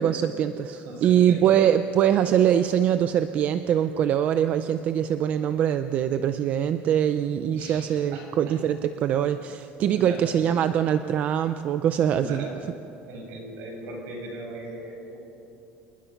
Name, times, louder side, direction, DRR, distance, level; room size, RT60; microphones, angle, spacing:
voice 1, 0.0-12.5, right 9 dB, 35° right, 11 dB, 0.5 m, -23 dB
voice 2, 0.8-1.6 7.5-8.3 9.0-9.1 9.9-10.2 12.1-12.5 13.1-15.2, right 2 dB, 60° right, 0 dB, 6.0 m, -38 dB
27.5 x 20.5 x 5.8 m, 2.9 s
cardioid pair, 180°, 4 cm